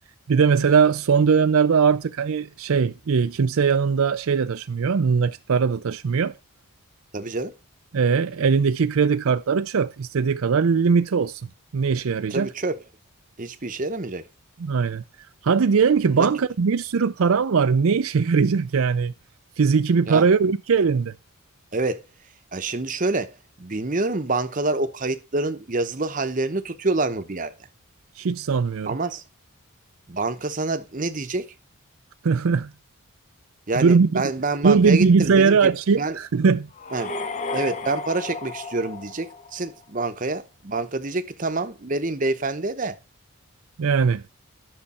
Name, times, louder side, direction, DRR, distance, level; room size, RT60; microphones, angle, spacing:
voice 1, 0.3-6.4 7.9-11.4 11.7-12.5 14.6-15.0 15.4-19.1 19.6-21.1 28.2-28.9 32.2-32.7 33.8-34.2 34.6-36.7 43.8-44.2, right 5 dB, 70° right, 0.5 m, -20 dB
voice 2, 7.1-7.5 12.3-12.8 13.4-14.2 16.1-16.3 20.1-20.3 21.7-22.1 22.5-27.5 28.9-29.2 30.1-31.5 33.7-35.7 36.0-36.2 36.9-37.2 37.5-43.0, right 3 dB, 35° right, 0.8 m, -27 dB
sound 1, 36.7-39.8, left 3 dB, 30° left, 0.6 m, -33 dB
11.0 x 6.5 x 4.2 m
head